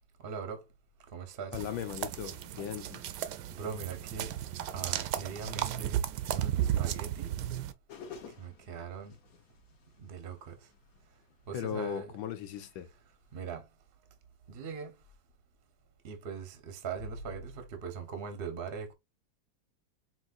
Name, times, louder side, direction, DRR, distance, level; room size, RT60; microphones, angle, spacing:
voice 1, 0.2-0.6 1.1-1.7 3.5-4.4 4.7-6.0 6.3-7.5 8.4-9.2 10.0-10.6 11.5-12.1 13.3-13.7 14.5-14.9 16.0-18.9, right 6 dB, 45° right, 0.8 m, -41 dB
voice 2, 1.5-3.0 11.5-12.9, left 9 dB, 90° left, 1.6 m, -37 dB
sound 1, 1.5-7.7, right 11 dB, 70° right, 1.0 m, -34 dB
sound 2, 7.9-13.4, left 6 dB, 55° left, 1.2 m, -53 dB
5.3 x 3.0 x 2.5 m
omnidirectional pair, 2.1 m